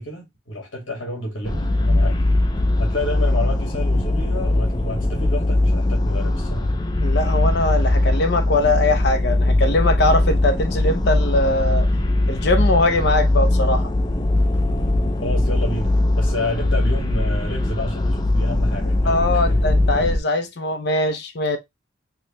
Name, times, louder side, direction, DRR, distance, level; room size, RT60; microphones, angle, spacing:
voice 1, 0.0-2.2 2.8-6.7 15.2-19.2 19.5-19.6, left 1 dB, 75° left, 1.7 m, -29 dB
sound 1, 1.4-20.2, left 1 dB, 20° left, 0.5 m, -20 dB
voice 2, 7.0-11.9 12.3-13.9 19.0-21.6, left 2 dB, 60° left, 0.7 m, -21 dB
4.7 x 2.2 x 2.8 m
head